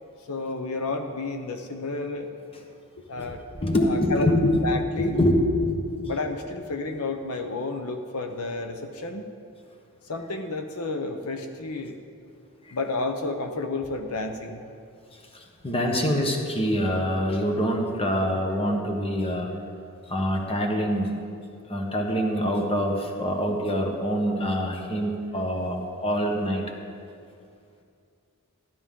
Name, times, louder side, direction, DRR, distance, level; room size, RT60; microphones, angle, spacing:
voice 1, 0.3-2.4 3.0-3.4 3.8-4.3 4.6-5.2 6.0-9.2 10.1-11.9 12.7-14.6, left 3 dB, 80° left, 5 dB, 0.8 m, -31 dB
voice 2, 3.1-4.6 5.0-5.3 5.6-6.0 12.6-12.8 15.1-19.5 20.1-21.1 21.7-26.7, equal, 25° left, 2 dB, 1.2 m, -25 dB
13.0 x 12.5 x 3.7 m, 2.4 s
head